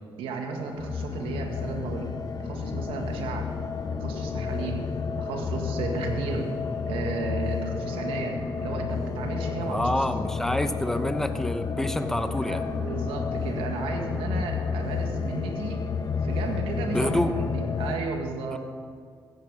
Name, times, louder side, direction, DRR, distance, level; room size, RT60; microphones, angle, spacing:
voice 1, 0.2-2.1 2.4-3.5 4.0-4.9 5.2-6.5 6.9-10.3 12.4-15.9 16.2-18.6, right 4 dB, 85° right, 3 dB, 1.8 m, -34 dB
sound 1, 0.5-18.0, left 5 dB, 50° left, 1.3 m, -31 dB
voice 2, 9.6-12.6 16.9-17.4 18.5-18.6, left 1 dB, 5° left, 9 dB, 0.9 m, -27 dB
14.5 x 10.0 x 4.9 m, 2.1 s
supercardioid pair, 70°, 9 cm